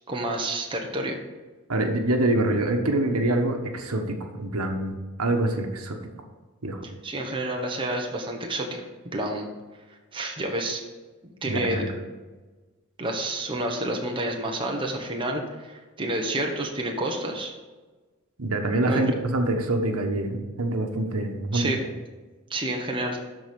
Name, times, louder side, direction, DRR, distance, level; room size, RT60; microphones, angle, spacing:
voice 1, 0.1-1.2 7.0-8.8 9.1-9.5 10.1-10.8 11.2-12.0 13.0-17.5 18.9-19.1 21.5-21.8 22.5-23.2, right 1 dB, 25° right, 1 dB, 1.1 m, -29 dB
voice 2, 1.7-6.0 6.6-6.8 11.4-11.9 18.4-21.7, right 2 dB, 85° right, 4 dB, 1.1 m, -25 dB
12.5 x 4.3 x 5.2 m, 1.3 s
head